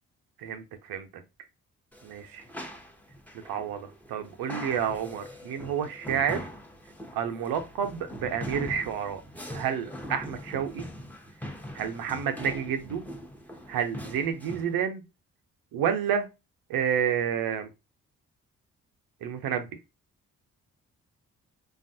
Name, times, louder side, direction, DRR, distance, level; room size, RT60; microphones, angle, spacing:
voice 1, 0.4-1.2 2.0-2.4 3.4-6.5 7.1-9.2 9.5-10.9 11.7-13.0 13.7-15.0 15.7-16.3 16.7-17.7 19.2-19.7, right 8 dB, 75° right, 0.6 m, -30 dB
sound 1, 1.9-14.7, equal, 5° left, 0.8 m, -42 dB
3.4 x 2.3 x 2.6 m
hypercardioid pair, 40°, 37 cm